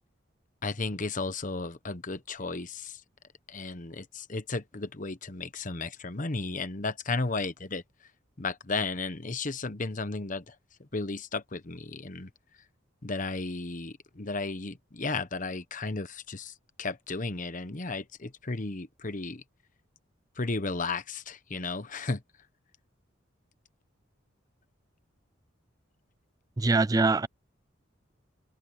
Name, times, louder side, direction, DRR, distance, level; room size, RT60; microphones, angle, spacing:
voice 1, 0.6-3.0 3.5-7.8 8.4-10.5 10.8-12.3 13.0-16.5 16.8-19.4 20.4-22.2, left 3 dB, 40° left, 1.1 m, -34 dB
voice 2, 26.6-27.3, right 3 dB, 20° right, 0.4 m, -23 dB
head